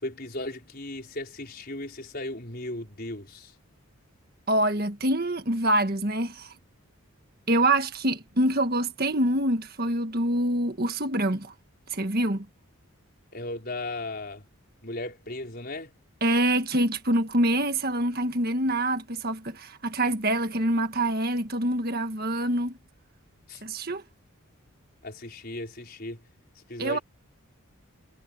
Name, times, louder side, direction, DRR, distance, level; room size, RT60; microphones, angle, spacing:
voice 1, 0.0-3.5 13.3-14.4 14.8-15.9 23.5-23.6 25.0-26.2 26.7-27.0, left 2 dB, 45° left, 5.1 m, -36 dB
voice 2, 4.5-6.5 7.5-11.5 11.9-12.4 16.2-22.8 23.6-24.0 26.8-27.0, right 1 dB, 45° right, 1.7 m, -25 dB
head